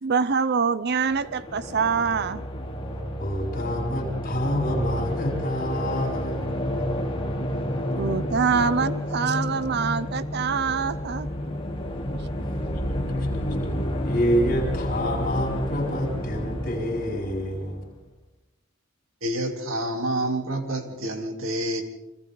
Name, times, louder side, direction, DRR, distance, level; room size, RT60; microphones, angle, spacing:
voice 1, 0.0-2.4 8.0-11.3 13.0-13.1, right 5 dB, 50° right, 15 dB, 0.6 m, -25 dB
sound 1, 0.9-18.0, equal, 25° left, 2.7 m, -30 dB
voice 2, 3.2-6.8 13.1-13.4 14.0-17.8, equal, 45° left, 1 dB, 7.2 m, -28 dB
voice 3, 19.2-21.8, right 1 dB, 75° right, 4 dB, 3.4 m, -28 dB
30.0 x 25.5 x 4.0 m, 0.96 s
head